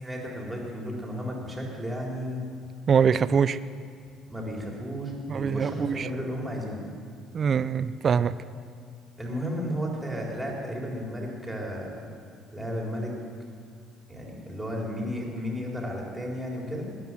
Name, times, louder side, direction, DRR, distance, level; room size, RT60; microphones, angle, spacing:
voice 1, 0.0-2.5 4.3-6.8 9.2-12.0 12.5-13.1 14.1-16.8, equal, 10° right, -2 dB, 4.2 m, -33 dB
voice 2, 2.9-3.6 5.3-6.1 7.3-8.4, right 6 dB, 40° right, 15 dB, 0.5 m, -23 dB
19.5 x 9.6 x 7.7 m, 2.1 s
cardioid pair, 100°, 0 cm